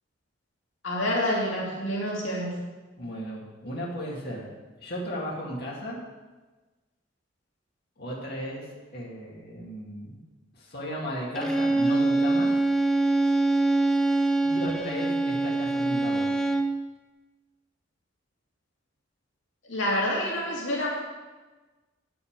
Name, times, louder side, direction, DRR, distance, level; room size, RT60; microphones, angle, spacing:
voice 1, 0.8-2.5 19.7-20.9, left 1 dB, 75° left, -3 dB, 2.4 m, -27 dB
voice 2, 3.0-4.5 4.8-6.0 8.0-10.2 10.6-12.5 14.4-16.3, equal, 55° left, -4 dB, 2.5 m, -35 dB
Bowed string instrument, 11.4-16.8, right 2 dB, 5° left, 0.9 m, -24 dB
9.6 x 7.0 x 6.7 m, 1.2 s
head